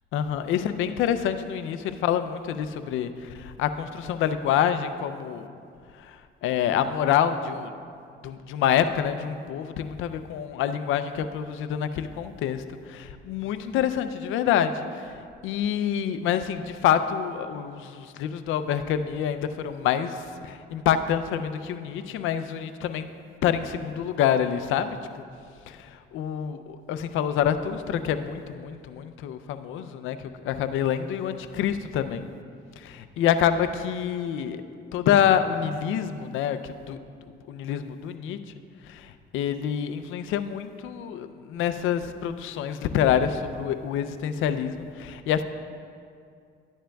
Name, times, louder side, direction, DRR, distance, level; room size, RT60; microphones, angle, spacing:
voice 1, 0.1-5.5 6.0-7.7 8.2-23.1 23.4-24.9 25.1-25.2 25.7-32.3 32.8-34.6 34.9-37.0 37.5-38.4 38.9-45.4, left 9 dB, 90° left, 10 dB, 0.5 m, -27 dB
12.5 x 10.0 x 2.3 m, 2.3 s
cardioid pair, 90°, 20 cm